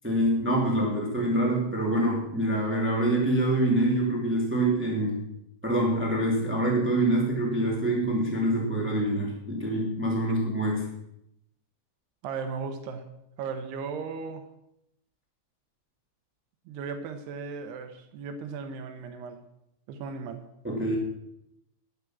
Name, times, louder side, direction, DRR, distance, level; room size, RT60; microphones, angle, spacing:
voice 1, 0.0-5.2 5.6-10.9 20.6-20.9, right 1 dB, 20° right, -2 dB, 0.3 m, -25 dB
voice 2, 12.2-13.1 13.4-14.4 16.7-19.4 19.9-20.4, right 5 dB, 75° right, 7 dB, 2.5 m, -36 dB
11.5 x 8.9 x 6.1 m, 0.80 s
omnidirectional pair, 5.6 m